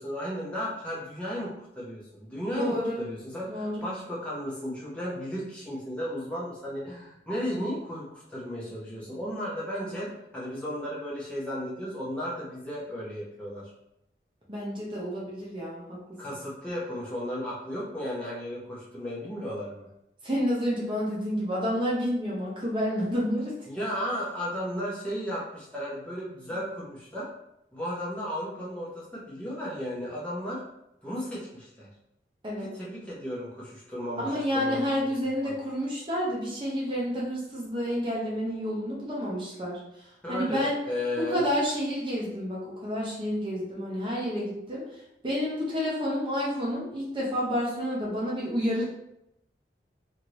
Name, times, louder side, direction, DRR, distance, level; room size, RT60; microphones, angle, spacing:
voice 1, 0.0-13.7 16.2-19.9 23.7-27.3 27.7-30.6 31.0-31.9 32.6-34.9 35.4-35.5 40.2-41.4, equal, 5° left, -7 dB, 0.7 m, -34 dB
voice 2, 2.5-3.0 3.5-3.9 14.5-16.0 20.2-23.5 32.4-32.7 34.2-39.8 40.3-40.8 41.2-44.8 45.2-48.9, equal, 30° right, -5 dB, 0.7 m, -29 dB
2.8 x 2.6 x 3.1 m, 0.82 s
head